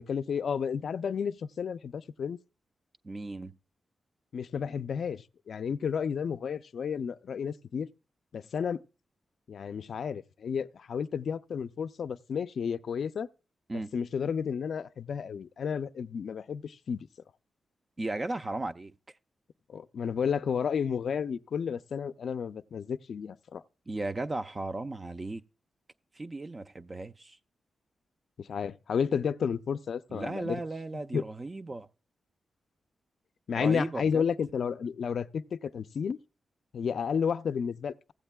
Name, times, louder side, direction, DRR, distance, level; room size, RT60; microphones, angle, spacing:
voice 1, 0.0-2.4 4.3-7.9 8.3-8.8 9.5-13.3 13.9-17.1 19.7-23.6 28.4-30.6 31.1-31.2 33.5-36.2 36.7-38.1, left 7 dB, 65° left, 0.3 m, -32 dB
voice 2, 3.0-3.5 13.7-13.9 18.0-18.9 23.9-25.4 26.2-27.4 30.1-31.9 33.6-34.2, right 2 dB, 25° right, 0.4 m, -35 dB
15.5 x 8.1 x 2.2 m
wide cardioid pair, 115°, 0 cm